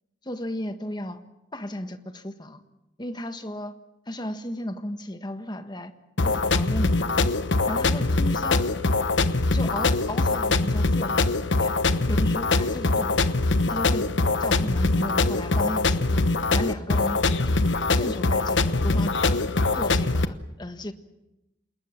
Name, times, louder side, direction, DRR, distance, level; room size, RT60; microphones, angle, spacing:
voice 1, 0.2-1.2 1.5-2.6 3.0-3.7 4.1-5.9 6.2-7.3 7.7-8.7 9.5-11.7 12.1-13.4 13.7-14.1 14.4-16.3 16.5-17.7 18.0-19.4 19.7-20.9, left 1 dB, 25° left, 9 dB, 1.5 m, -34 dB
sound 1, 6.2-20.2, left 3 dB, 85° left, 1.1 m, -23 dB
28.5 x 20.0 x 7.4 m, 0.93 s
head